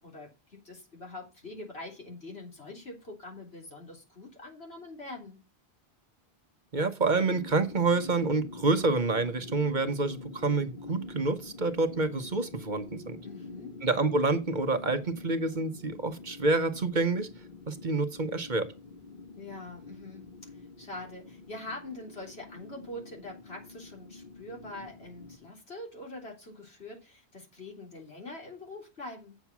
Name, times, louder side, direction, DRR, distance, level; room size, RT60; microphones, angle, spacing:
voice 1, 0.0-5.4 13.2-13.7 19.4-29.4, left 2 dB, 75° left, 3.7 m, -44 dB
voice 2, 6.7-13.2 13.8-17.3 17.7-18.7, right 3 dB, 50° right, 1.1 m, -28 dB
sound 1, 7.0-25.4, left 3 dB, 55° left, 1.7 m, -46 dB
8.3 x 7.0 x 6.0 m
omnidirectional pair, 1.1 m